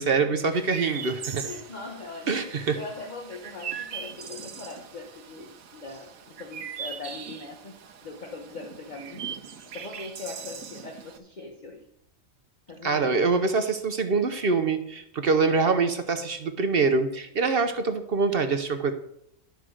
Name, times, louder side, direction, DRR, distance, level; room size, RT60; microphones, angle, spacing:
voice 1, 0.0-1.5 2.3-2.8 12.8-18.9, right 4 dB, 50° right, 8 dB, 0.9 m, -24 dB
Chirp tweet, 0.5-11.2, right 7 dB, 80° right, 1.3 m, -40 dB
voice 2, 1.4-9.2 9.7-11.9 12.7-13.1, left 3 dB, 35° left, 1 dB, 0.9 m, -41 dB
11.5 x 4.6 x 6.3 m, 0.75 s
omnidirectional pair, 1.4 m